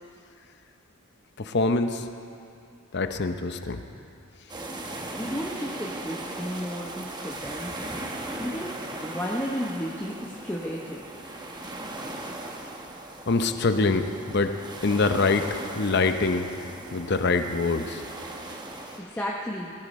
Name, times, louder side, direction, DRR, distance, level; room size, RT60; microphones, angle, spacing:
voice 1, 1.4-2.0 2.9-3.8 13.3-14.1 14.3-14.5 14.8-15.5 15.7-16.5 16.9-18.0, left 3 dB, 50° left, 8 dB, 0.7 m, -24 dB
sound 1, 4.5-19.0, right 2 dB, 20° right, 1.1 m, -38 dB
voice 2, 5.1-7.7 8.4-8.7 9.0-11.0 19.0-19.7, equal, 10° left, -2 dB, 0.9 m, -33 dB
19.0 x 15.0 x 4.2 m, 2.6 s
head